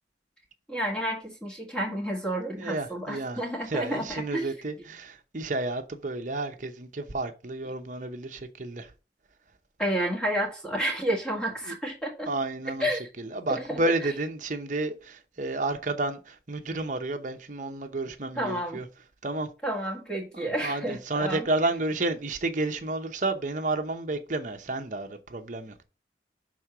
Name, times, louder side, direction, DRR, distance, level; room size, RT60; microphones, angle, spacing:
voice 1, 0.7-4.5 9.8-12.3 12.8-13.0 13.5-13.8 18.4-18.8 19.6-21.5, right 1 dB, 5° left, 1.7 m, -30 dB
voice 2, 2.6-8.9 11.7-11.8 12.3-18.9 19.2-19.5 20.3-25.8, right 2 dB, 45° right, 0.8 m, -31 dB
6.3 x 3.7 x 5.8 m
head